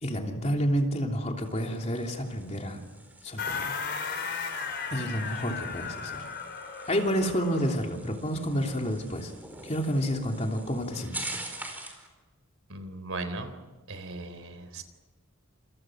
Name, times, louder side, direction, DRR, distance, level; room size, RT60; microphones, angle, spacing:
voice 1, 0.0-2.8 3.2-3.8 4.9-6.3 6.9-9.3 9.6-11.4, equal, 30° left, 2 dB, 3.1 m, -29 dB
sound 1, 1.4-12.1, right 1 dB, 10° right, 4.7 m, -45 dB
sound 2, 3.4-7.8, left 5 dB, 50° left, 4.4 m, -35 dB
voice 2, 12.7-13.5 13.9-14.8, right 2 dB, 70° right, 9 dB, 3.7 m, -37 dB
29.5 x 28.0 x 6.4 m, 1.2 s
head